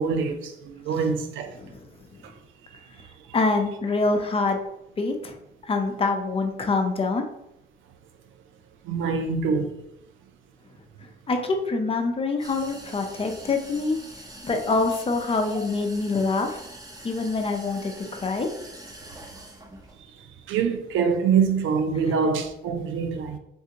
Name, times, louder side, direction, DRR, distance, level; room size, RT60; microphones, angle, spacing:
voice 1, 0.0-1.5 8.9-9.7 20.5-23.4, right 5 dB, 80° right, 0.5 m, -24 dB
voice 2, 3.3-4.6 5.0-5.4 5.6-7.2 11.3-14.0 14.4-16.6 17.0-18.5 22.1-22.2, left 3 dB, 30° left, 0.6 m, -25 dB
sound 1, 12.4-20.0, right 1 dB, 20° right, 0.7 m, -44 dB
3.3 x 2.7 x 2.8 m
cardioid pair, 90°, 20 cm